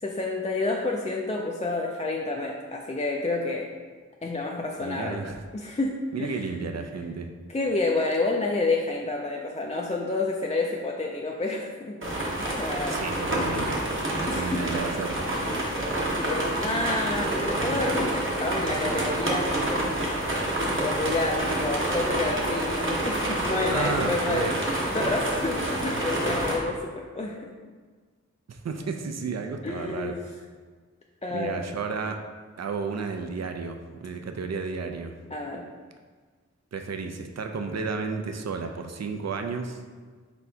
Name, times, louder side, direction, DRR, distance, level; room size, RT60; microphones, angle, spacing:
voice 1, 0.0-3.7 4.2-6.5 7.5-12.0 12.4-13.0 14.3-14.7 15.6-15.7 16.1-19.5 20.6-24.5 24.9-27.5 29.6-30.2 31.2-31.6 35.3-35.6, left 2 dB, 25° left, -1 dB, 0.4 m, -29 dB
voice 2, 4.8-5.4 6.1-7.3 12.9-13.8 14.2-15.2 23.7-24.6 28.5-30.1 31.3-32.2 32.6-35.1 36.7-39.8, right 5 dB, 60° right, 5 dB, 0.4 m, -32 dB
sound 1, 12.0-26.6, right 1 dB, 40° right, 0.9 m, -28 dB
4.3 x 4.2 x 2.7 m, 1.5 s
wide cardioid pair, 50°, 30 cm